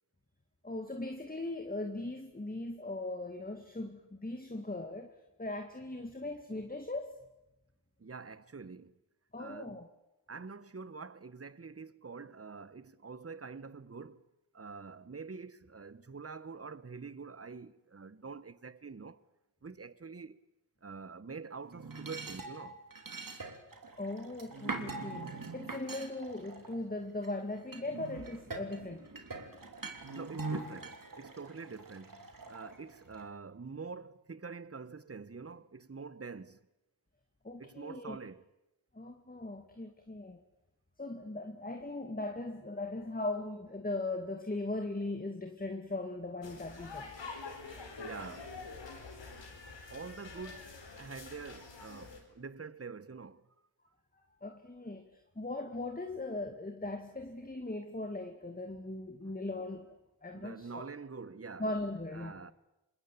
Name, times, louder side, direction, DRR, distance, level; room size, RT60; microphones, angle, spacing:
voice 1, 0.6-5.1 5.4-7.2 9.3-9.9 24.0-29.1 37.4-38.2 38.9-40.4 41.0-47.1 54.4-60.0 60.2-60.8 61.6-62.3, left 2 dB, 20° left, 2.3 m, -39 dB
voice 2, 8.0-9.0 9.4-9.8 10.3-14.2 14.5-19.2 19.6-20.4 20.8-22.8 30.1-36.6 37.6-38.4 48.0-48.5 49.9-53.5 60.3-61.7 62.1-62.5, right 4 dB, 30° right, 1.3 m, -46 dB
sound 1, 21.6-27.3 27.7-33.2, right 3 dB, 45° right, 3.6 m, -43 dB
sound 2, 46.4-52.2, left 4 dB, 75° left, 5.1 m, -46 dB
25.0 x 21.5 x 8.5 m
cardioid pair, 40°, 44 cm